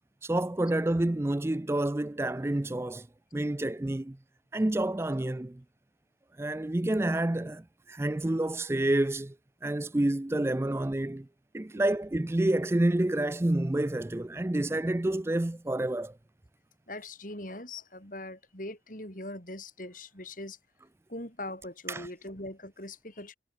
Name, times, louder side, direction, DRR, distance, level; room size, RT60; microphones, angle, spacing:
voice 1, 0.2-3.1 3.3-4.2 4.5-5.6 6.4-9.4 9.6-11.3 11.5-16.2 21.9-22.1, right 1 dB, 15° right, 0.4 m, -28 dB
voice 2, 16.9-20.6 21.1-23.3, left 1 dB, 45° left, 6.9 m, -41 dB
head